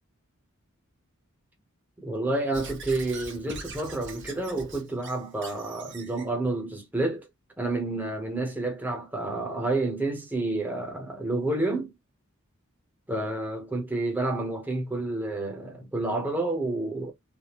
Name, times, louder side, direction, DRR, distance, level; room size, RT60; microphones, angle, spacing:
voice 1, 2.0-7.3 7.6-11.9 13.1-17.1, right 2 dB, 10° right, 0.9 m, -29 dB
Squeak / Writing, 2.5-6.3, right 3 dB, 55° right, 1.0 m, -42 dB
3.4 x 2.2 x 2.8 m
head